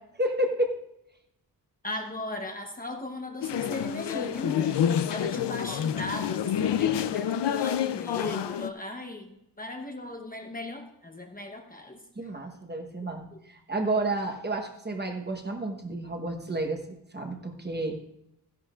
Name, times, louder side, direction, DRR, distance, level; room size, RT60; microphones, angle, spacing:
voice 1, 0.1-0.7 12.2-16.8 17.1-17.9, right 1 dB, 25° right, 3 dB, 1.1 m, -30 dB
voice 2, 1.8-4.8 5.1-12.0 13.0-13.4, left 2 dB, 20° left, 3 dB, 0.9 m, -37 dB
sound 1, 3.4-8.7, left 9 dB, 90° left, 0.6 m, -28 dB
14.0 x 11.0 x 2.4 m, 0.81 s
wide cardioid pair, 170°, 40 cm